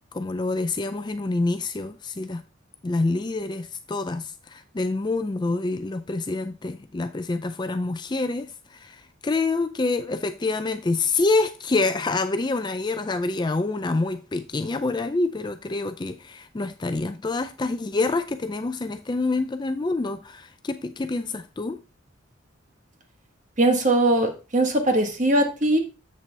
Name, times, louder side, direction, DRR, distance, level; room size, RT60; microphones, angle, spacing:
voice 1, 0.0-2.4 2.8-21.8, left 3 dB, 20° left, 0.4 m, -27 dB
voice 2, 23.6-25.8, right 1 dB, 40° right, 1.3 m, -20 dB
7.6 x 6.7 x 3.3 m
head